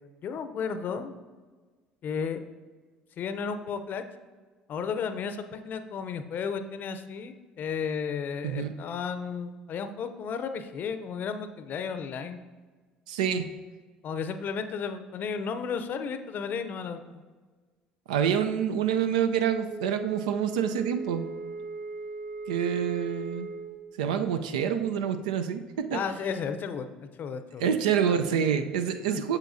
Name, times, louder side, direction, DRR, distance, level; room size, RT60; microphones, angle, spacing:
voice 1, 0.2-1.2 2.0-2.5 3.2-4.0 4.7-12.4 14.0-17.0 25.9-26.9 27.2-27.6 28.0-28.2 29.0-29.2, left 6 dB, 50° left, 9 dB, 0.6 m, -33 dB
voice 2, 13.1-13.5 18.1-21.2 22.5-23.5 24.0-26.0 27.6-29.4, right 8 dB, 80° right, 9 dB, 0.4 m, -27 dB
Wind instrument woodwind instrument, 19.6-23.8, right 3 dB, 45° right, 1.3 m, -38 dB
8.1 x 6.9 x 2.7 m, 1.4 s
hypercardioid pair, 65°, 4 cm